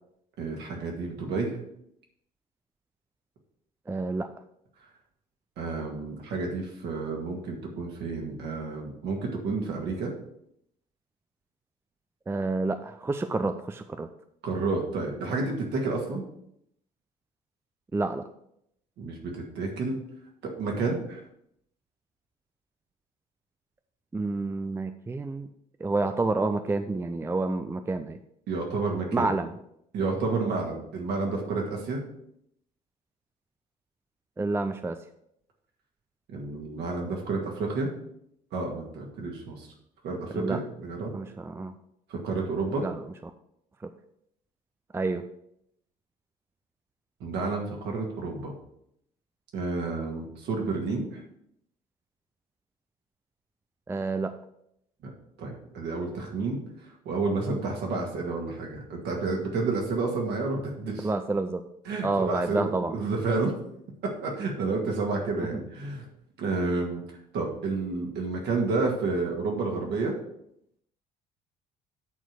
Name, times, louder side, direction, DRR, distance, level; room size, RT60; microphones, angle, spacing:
voice 1, 0.4-1.6 5.6-10.1 14.4-16.2 19.0-20.0 20.6-21.2 28.5-29.3 29.9-32.0 36.3-37.9 38.5-39.7 40.0-41.1 42.1-42.8 47.2-48.5 49.5-51.2 55.4-56.6 57.1-61.1 61.9-63.6 64.0-66.0 66.4-67.0 67.3-70.1, right 3 dB, 55° right, 1 dB, 2.1 m, -30 dB
voice 2, 3.9-4.3 12.3-14.1 17.9-18.3 24.1-25.5 25.8-28.2 29.1-29.5 34.4-35.0 40.3-40.6 41.1-41.7 42.8-43.0 43.8-43.9 44.9-45.2 53.9-54.3 61.0-61.6 62.0-63.0 65.4-65.5, right 3 dB, 10° right, 8 dB, 0.5 m, -29 dB
8.3 x 4.5 x 6.5 m, 0.75 s
figure-of-eight pair, 50°, 21 cm